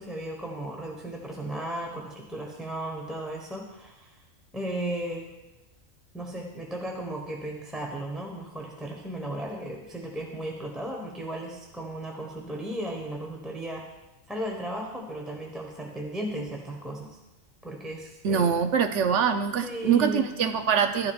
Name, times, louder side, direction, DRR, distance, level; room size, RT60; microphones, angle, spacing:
voice 1, 0.0-4.1 4.5-5.3 6.1-13.8 14.3-17.2 17.6-18.4 19.6-20.2, right 1 dB, ahead, 0 dB, 1.0 m, -35 dB
voice 2, 18.2-21.1, right 7 dB, 65° right, 8 dB, 0.9 m, -24 dB
13.0 x 10.5 x 2.4 m, 1.0 s
omnidirectional pair, 1.4 m